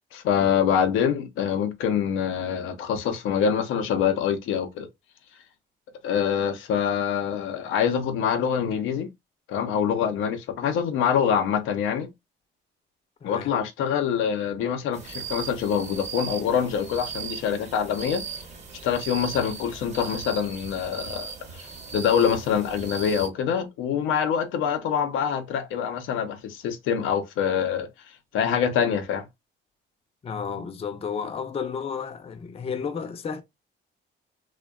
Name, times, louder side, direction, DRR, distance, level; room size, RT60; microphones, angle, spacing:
voice 1, 0.1-4.9 6.0-9.1 9.5-12.1 13.2-18.2 18.8-21.6 21.9-27.9 28.3-29.2, left 8 dB, 85° left, 0.5 m, -25 dB
voice 2, 13.2-13.6 30.2-33.4, left 6 dB, 30° left, 0.4 m, -32 dB
sound 1, 14.9-23.3, right 6 dB, 35° right, 0.7 m, -38 dB
2.6 x 2.1 x 2.2 m
cardioid pair, 90°, 20 cm